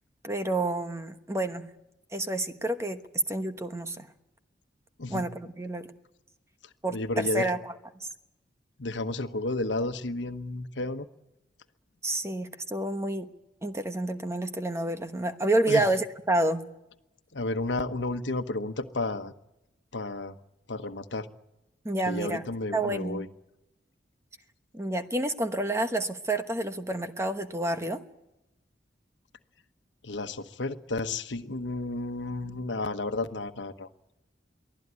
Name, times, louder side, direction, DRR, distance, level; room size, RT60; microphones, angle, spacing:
voice 1, 0.2-1.7 2.1-3.0 3.3-4.1 5.1-5.9 6.8-7.7 12.0-13.3 13.6-16.6 21.8-22.4 22.7-23.2 24.7-28.0, right 1 dB, 15° right, 8 dB, 1.1 m, -29 dB
voice 2, 6.9-7.5 8.8-11.1 15.7-15.9 17.3-19.3 19.9-20.4 20.7-21.3 22.1-23.3 30.0-33.9, left 2 dB, 85° left, 9 dB, 1.2 m, -32 dB
23.5 x 16.0 x 9.7 m, 0.93 s
head